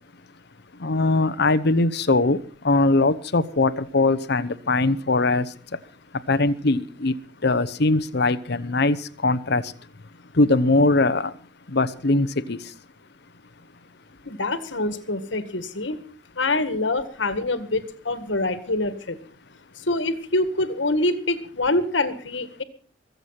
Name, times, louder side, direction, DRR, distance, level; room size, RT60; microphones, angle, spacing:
voice 1, 0.8-5.5 6.3-7.1 7.4-9.7 10.3-11.3 11.7-12.6, left 2 dB, 60° left, 14 dB, 1.0 m, -21 dB
voice 2, 14.3-16.0 16.4-19.2 19.9-22.6, left 2 dB, 75° left, 11 dB, 1.9 m, -25 dB
23.5 x 8.2 x 5.8 m, 0.44 s
head